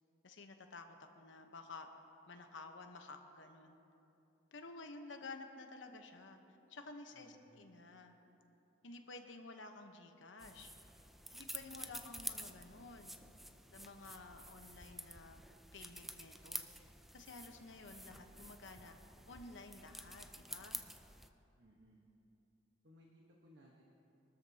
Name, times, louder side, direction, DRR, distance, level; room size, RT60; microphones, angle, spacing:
voice 1, 0.2-1.9 2.3-3.8 4.5-6.4 6.7-8.1 8.8-10.7 11.3-13.2 13.7-15.4 15.7-16.9 17.1-19.0 19.3-20.8, left 3 dB, 75° left, 5 dB, 1.0 m, -52 dB
voice 2, 7.1-7.6 11.6-12.0 21.5-22.1 22.8-23.8, equal, 65° right, -2 dB, 1.3 m, -64 dB
sound 1, 10.4-21.3, equal, ahead, 0.4 m, -50 dB
23.0 x 13.0 x 2.9 m, 2.9 s
head